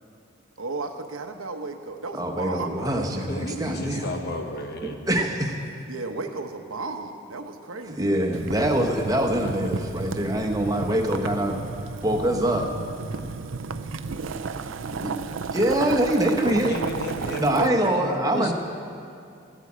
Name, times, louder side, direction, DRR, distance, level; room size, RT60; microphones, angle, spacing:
voice 1, 0.6-3.3 5.9-8.1 17.6-18.2, right 3 dB, 90° right, 5 dB, 1.0 m, -34 dB
voice 2, 2.1-4.1 4.8-5.5 7.9-11.6 12.0-12.7 14.9-15.1 15.5-16.7 17.4-18.5, right 1 dB, 20° right, 2 dB, 1.1 m, -24 dB
voice 3, 3.3-5.1 16.3-18.5, equal, 50° left, 4 dB, 1.2 m, -32 dB
Boiling, 8.3-17.7, right 4 dB, 70° right, 0.5 m, -33 dB
13.5 x 8.2 x 8.6 m, 2.4 s
head